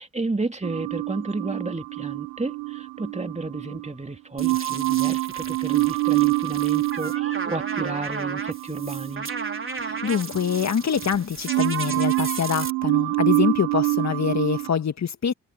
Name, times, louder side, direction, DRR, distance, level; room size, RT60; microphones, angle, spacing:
voice 1, 0.0-9.3, right 2 dB, 20° right, 2.8 m, -32 dB
sound 1, 0.6-3.9 4.4-11.2 11.5-14.7, right 25 dB, 85° right, 0.7 m, -26 dB
sound 2, 4.4-12.7, right 4 dB, 35° right, 4.0 m, -35 dB
voice 2, 9.8-15.3, left 7 dB, 50° left, 1.7 m, -25 dB
hypercardioid pair, 40°, 36 cm